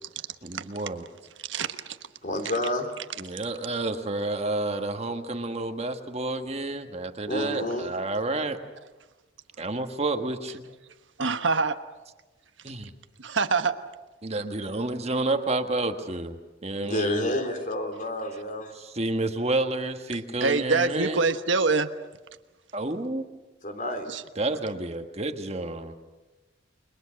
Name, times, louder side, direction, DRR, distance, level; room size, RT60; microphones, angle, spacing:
voice 1, 0.4-1.0 3.2-8.6 9.6-10.6 12.6-12.9 14.2-16.3 16.6-17.3 18.7-21.3 22.7-23.3 24.4-25.9, right 2 dB, 35° right, 6 dB, 1.5 m, -30 dB
voice 2, 1.5-2.0 11.2-11.8 13.2-13.7 20.4-21.9 24.1-24.2, right 4 dB, 85° right, 9 dB, 1.3 m, -25 dB
voice 3, 2.2-2.9 7.3-7.9 16.8-18.7 23.6-24.1, left 1 dB, 45° left, 5 dB, 3.4 m, -29 dB
30.0 x 22.0 x 6.4 m, 1.1 s
head